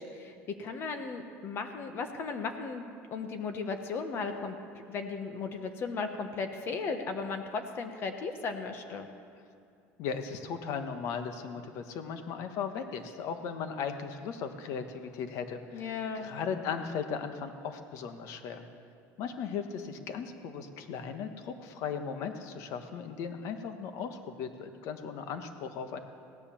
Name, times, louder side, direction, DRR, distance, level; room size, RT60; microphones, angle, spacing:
voice 1, 0.0-4.5 4.9-9.1 15.7-16.3, left 4 dB, 40° left, 6 dB, 1.2 m, -36 dB
voice 2, 10.0-18.6 19.2-26.0, left 6 dB, 60° left, 8 dB, 1.3 m, -37 dB
17.0 x 10.0 x 7.1 m, 2.4 s
cardioid pair, 140°, 6 cm